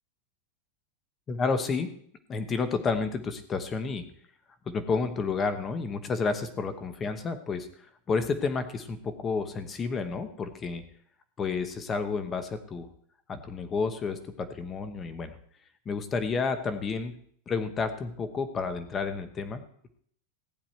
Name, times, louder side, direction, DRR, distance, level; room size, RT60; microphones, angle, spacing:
voice 1, 1.3-1.9 2.3-4.1 4.7-7.7 8.1-10.8 11.4-12.9 13.3-15.3 15.8-17.2 17.5-19.6, left 4 dB, 15° left, 10 dB, 0.9 m, -30 dB
15.5 x 9.5 x 4.4 m, 0.63 s
supercardioid pair, 180°, 0 cm